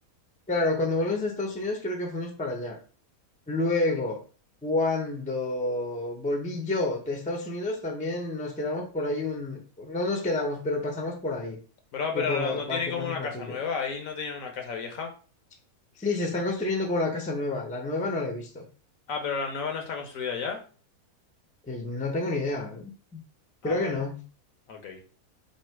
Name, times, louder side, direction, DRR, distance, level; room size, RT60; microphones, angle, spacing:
voice 1, 0.5-2.8 3.5-4.2 4.6-11.6 12.1-13.6 16.0-18.6 21.7-23.2 23.6-24.2, left 2 dB, 10° left, 2 dB, 0.5 m, -29 dB
voice 2, 11.9-15.1 19.1-20.6 23.6-24.0 24.7-25.0, left 5 dB, 70° left, 4 dB, 1.2 m, -32 dB
3.2 x 2.7 x 4.4 m, 0.38 s
omnidirectional pair, 1.5 m